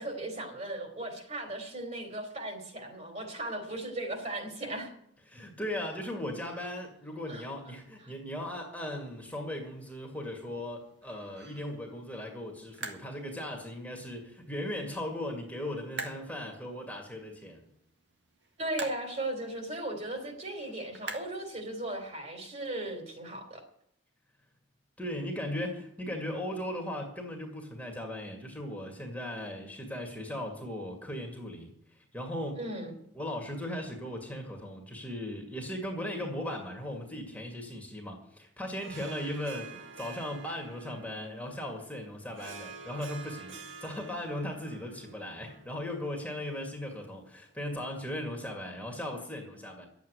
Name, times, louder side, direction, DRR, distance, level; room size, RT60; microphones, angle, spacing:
voice 1, 0.0-4.9 7.3-7.4 18.6-23.6 32.6-32.9, right 1 dB, 35° right, 4 dB, 3.2 m, -37 dB
voice 2, 5.3-17.7 25.0-32.6 33.1-49.9, left 1 dB, 10° left, 1 dB, 2.1 m, -38 dB
sound 1, 8.9-22.1, right 3 dB, 65° right, 1.9 m, -48 dB
Harp, 38.7-47.4, right 4 dB, 85° right, 1.7 m, -49 dB
11.5 x 8.4 x 9.5 m, 0.72 s
head